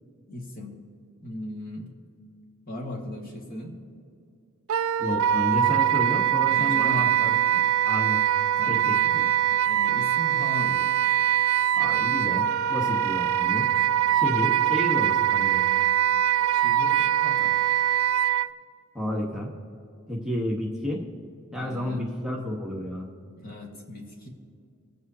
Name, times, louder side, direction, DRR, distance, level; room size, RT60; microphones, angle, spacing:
voice 1, 0.3-0.8 1.2-1.9 2.7-3.8 6.5-7.2 8.6-8.8 9.7-10.8 16.5-17.7 21.5-22.1 23.4-24.3, left 1 dB, 45° left, -1 dB, 1.8 m, -38 dB
Wind instrument woodwind instrument, 4.7-18.5, right 10 dB, 80° right, 0.4 m, -23 dB
voice 2, 5.0-7.6 7.9-8.2 8.7-9.3 11.7-13.7 14.1-15.6 18.9-19.5 20.1-21.0 21.5-23.1, equal, 5° right, -3 dB, 1.2 m, -31 dB
22.0 x 7.9 x 2.8 m, 2.4 s
head